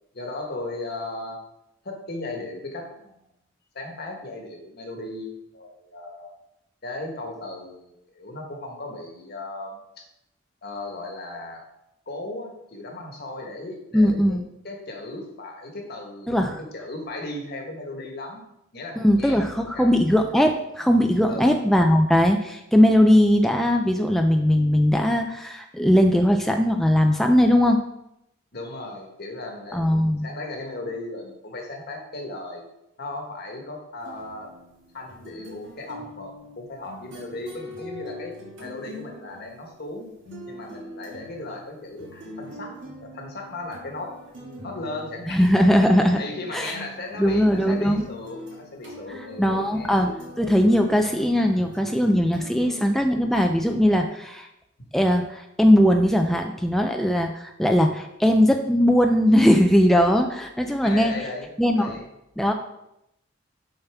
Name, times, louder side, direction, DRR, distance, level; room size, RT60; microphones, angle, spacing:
voice 1, 0.1-1.4 1.8-3.2 3.7-6.3 6.8-10.0 10.6-11.6 12.1-14.4 14.6-20.0 21.3-21.6 28.5-32.6 33.0-34.5 34.9-40.1 40.5-45.5 46.2-50.0 60.8-61.5 61.7-62.1, left 2 dB, 55° left, 2 dB, 1.3 m, -36 dB
voice 2, 13.9-14.4 16.3-16.6 19.0-27.8 29.7-30.3 45.3-46.2 46.5-46.7 47.2-48.1 49.4-54.5 54.9-61.1 61.6-61.9 62.4-62.5, equal, ahead, 4 dB, 0.3 m, -19 dB
sound 1, 34.0-39.9 40.3-52.8, left 1 dB, 70° right, 2.3 m, -42 dB
6.7 x 5.7 x 3.4 m, 0.84 s
head